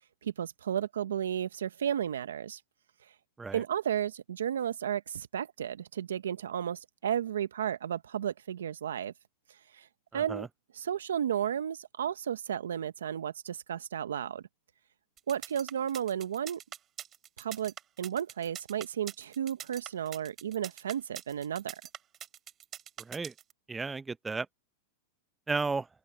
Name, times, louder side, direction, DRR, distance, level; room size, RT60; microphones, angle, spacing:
voice 1, 0.2-2.6 3.0-3.2 3.5-9.1 9.5-10.5 10.7-14.4 15.3-16.6 17.4-21.8, right 9 dB, 85° right, 0.7 m, -33 dB
voice 2, 10.1-10.5 23.1-23.3 23.7-24.5 25.5-25.9, right 4 dB, 10° right, 0.7 m, -33 dB
sound 1, 15.2-23.5, right 10 dB, 30° right, 3.4 m, -44 dB
open air
hypercardioid pair, 120°, 0 cm